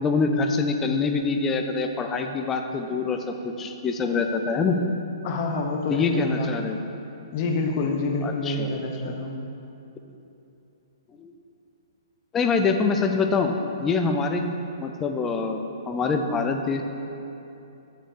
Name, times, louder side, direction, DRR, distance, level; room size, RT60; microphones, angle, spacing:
voice 1, 0.0-4.8 5.9-6.8 8.2-8.7 9.0-9.2 11.2-11.3 12.3-13.5 13.8-14.4 14.8-16.8, left 4 dB, 10° left, 4 dB, 0.3 m, -25 dB
voice 2, 5.2-6.5 7.3-9.4, left 3 dB, 25° left, 2 dB, 0.7 m, -27 dB
6.3 x 6.3 x 7.0 m, 2.8 s
hypercardioid pair, 180°, 3 cm